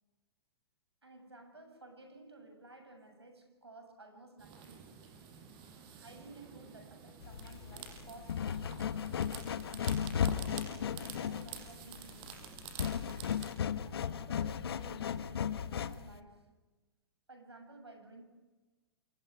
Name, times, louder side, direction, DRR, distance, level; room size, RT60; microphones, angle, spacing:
voice 1, 1.0-5.1 5.9-9.1 10.1-12.7 13.8-16.5 17.3-18.2, right 2 dB, 90° right, 8.0 m, -54 dB
sound 1, 4.4-13.6, right 7 dB, 35° right, 6.8 m, -49 dB
sound 2, 7.2-16.2, left 8 dB, 70° left, 1.4 m, -36 dB
29.0 x 27.5 x 4.9 m
figure-of-eight pair, 110°, 13 cm